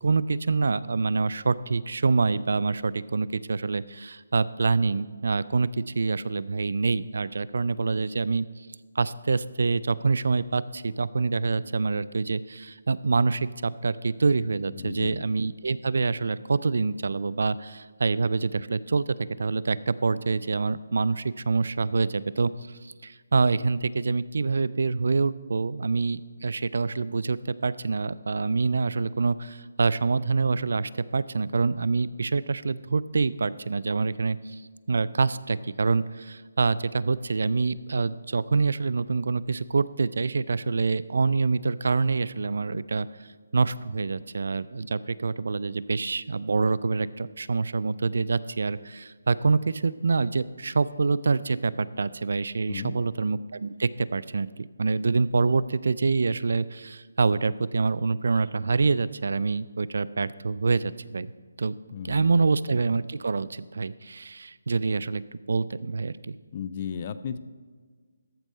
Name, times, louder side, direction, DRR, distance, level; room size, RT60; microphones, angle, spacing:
voice 1, 0.0-8.7 9.0-22.5 22.8-34.6 34.9-43.1 43.5-61.3 61.6-61.7 62.0-65.2 65.5-66.4, right 4 dB, 65° right, 18 dB, 0.3 m, -26 dB
voice 2, 14.7-15.3 52.7-53.0 61.9-62.5 66.5-67.4, left 7 dB, 30° left, 14 dB, 0.3 m, -35 dB
13.5 x 4.6 x 5.4 m, 1.5 s
hypercardioid pair, 170°, 0 cm